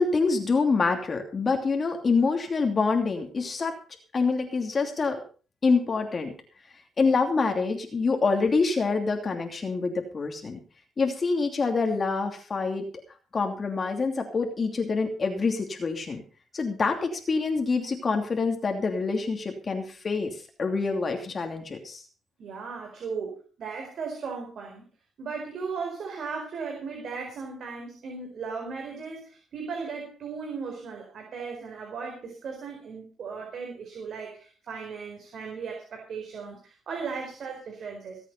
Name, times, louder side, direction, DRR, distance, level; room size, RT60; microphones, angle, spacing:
voice 1, 0.0-3.8 4.1-5.2 5.6-6.3 7.0-10.6 11.0-12.9 13.3-16.2 16.5-22.0, left 4 dB, 35° left, 3 dB, 2.8 m, -26 dB
voice 2, 22.4-24.8 25.2-38.2, right 5 dB, 60° right, 1 dB, 4.6 m, -36 dB
20.0 x 8.3 x 5.5 m, 0.38 s
cardioid pair, 90°, 0 cm